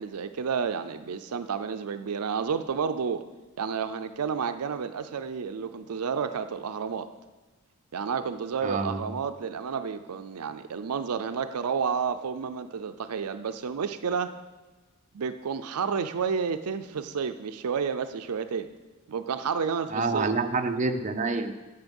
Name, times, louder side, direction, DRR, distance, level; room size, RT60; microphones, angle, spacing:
voice 1, 0.0-3.2 3.6-7.1 7.9-14.3 15.1-18.7 19.1-20.3, right 6 dB, 80° right, 10 dB, 0.5 m, -30 dB
voice 2, 8.6-9.1 19.9-21.5, right 3 dB, 35° right, 5 dB, 0.6 m, -27 dB
9.4 x 8.1 x 5.4 m, 1.2 s
head